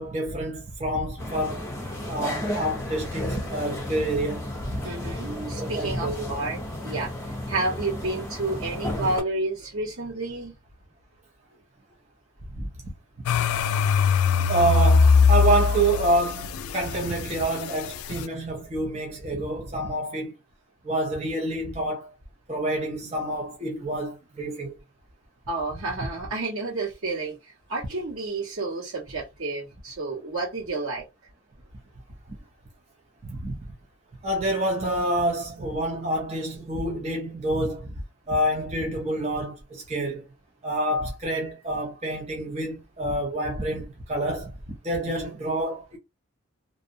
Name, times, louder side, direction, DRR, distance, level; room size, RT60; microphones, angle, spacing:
voice 1, 0.0-1.7 2.0-4.8 5.6-6.3 12.5-12.7 14.5-20.3 20.8-22.1 22.5-24.7 33.3-33.6 34.2-38.0 38.3-40.2 40.6-44.5 44.8-46.0, right 1 dB, 30° right, 0.5 m, -27 dB
sound 1, 1.2-9.2, left 1 dB, 10° left, 0.7 m, -33 dB
voice 2, 4.8-6.6 6.8-7.1 7.5-10.5 25.5-31.1 45.1-45.4, right 2 dB, 80° right, 1.3 m, -30 dB
sound 2, 13.3-18.2, left 5 dB, 90° left, 0.3 m, -21 dB
2.6 x 2.0 x 2.6 m
head